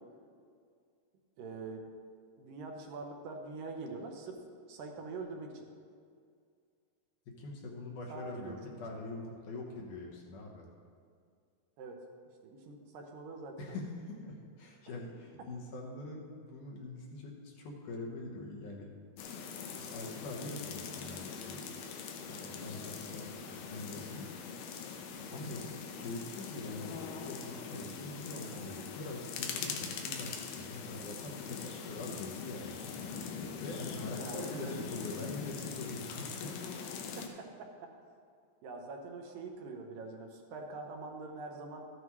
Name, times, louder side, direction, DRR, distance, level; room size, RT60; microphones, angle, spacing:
voice 1, 1.4-1.9 2.4-4.4 4.7-5.7 8.1-8.8 11.8-12.1 12.4-13.8 25.3-25.4 34.2-34.8 37.2-37.9 38.6-41.9, right 3 dB, 75° right, 2 dB, 2.4 m, -44 dB
voice 2, 7.3-10.7 13.6-18.9 19.8-21.7 22.2-23.3 23.7-24.3 25.3-25.7 26.0-27.0 27.2-32.8 33.6-36.9, left 2 dB, 65° left, -1 dB, 2.5 m, -43 dB
sound 1, 19.2-37.3, left 6 dB, 85° left, 2.6 m, -42 dB
13.0 x 9.5 x 3.1 m, 2.2 s
omnidirectional pair, 4.1 m